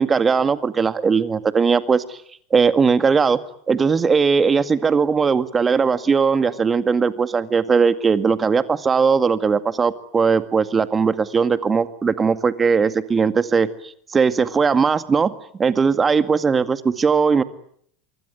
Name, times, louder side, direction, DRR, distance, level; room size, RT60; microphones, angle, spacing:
voice 1, 0.0-2.2 2.5-3.4 3.7-13.7 14.1-15.3 15.6-17.4, right 5 dB, 25° right, 12 dB, 2.1 m, -19 dB
25.0 x 24.0 x 9.5 m, 0.66 s
hypercardioid pair, 85°, 0 cm